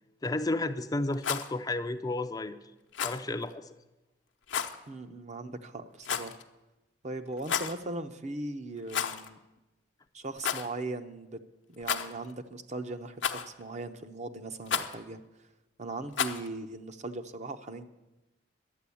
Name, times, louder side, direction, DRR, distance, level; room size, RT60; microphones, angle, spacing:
voice 1, 0.2-2.6 3.0-3.7, left 2 dB, 20° left, 8 dB, 0.4 m, -32 dB
Rattle, 1.1-1.5 2.9-3.2 4.5-4.8 6.0-6.4 7.4-7.8 8.9-9.3 9.6-9.7 10.4-10.7 11.8-12.3 13.2-13.6 14.7-15.0 16.1-16.5, left 7 dB, 80° left, 0.8 m, -32 dB
voice 2, 4.9-6.4 7.0-9.4 10.1-11.4 11.7-15.2 15.8-17.9, right 2 dB, 40° right, 8 dB, 0.7 m, -39 dB
11.5 x 9.1 x 8.4 m, 1.0 s
head